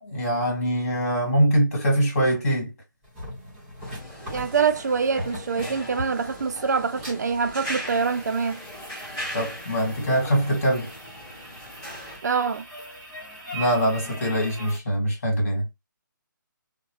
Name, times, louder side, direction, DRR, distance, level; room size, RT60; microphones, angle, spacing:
voice 1, 0.0-2.7 9.3-10.9 13.5-15.6, equal, 40° left, 1.8 m, -23 dB
sound 1, 3.0-14.8, equal, 5° right, 1.7 m, -40 dB
sound 2, 3.8-12.2, equal, 15° left, 1.3 m, -39 dB
voice 2, 4.2-8.6 12.2-12.7, right 5 dB, 55° right, 0.4 m, -25 dB
2.7 x 2.1 x 3.0 m
hypercardioid pair, 170°, 11 cm